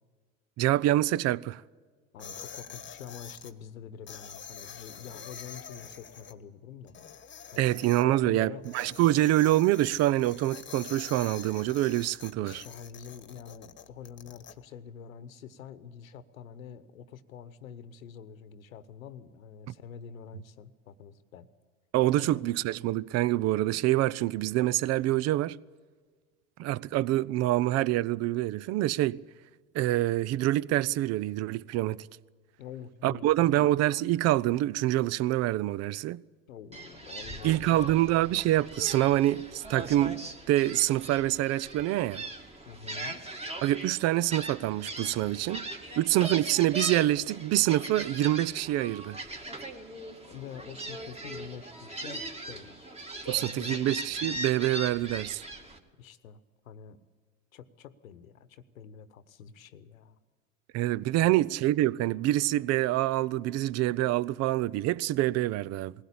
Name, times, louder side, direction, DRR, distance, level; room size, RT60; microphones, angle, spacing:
voice 1, 0.6-1.6 7.6-12.6 21.9-25.6 26.6-29.2 29.7-32.1 33.0-36.2 37.4-40.2 40.5-42.2 43.6-45.6 46.0-49.2 53.3-55.4 60.7-65.9, right 15 dB, 40° right, 0.6 m, -26 dB
voice 2, 2.1-7.0 7.5-8.6 12.4-21.5 22.2-22.4 32.6-33.6 36.5-38.3 42.6-43.2 50.3-52.9 53.3-53.9 56.0-56.4 56.6-57.0 57.5-60.2 61.1-61.4, left 8 dB, 80° left, 1.2 m, -46 dB
sound 1, 2.2-3.5 4.1-6.3 6.9-8.0 8.6-14.5, left 8 dB, 30° left, 1.4 m, -46 dB
Gull seagull, 36.7-55.8, right 2 dB, 15° right, 2.2 m, -40 dB
20.5 x 16.5 x 8.6 m
hypercardioid pair, 85°, 40 cm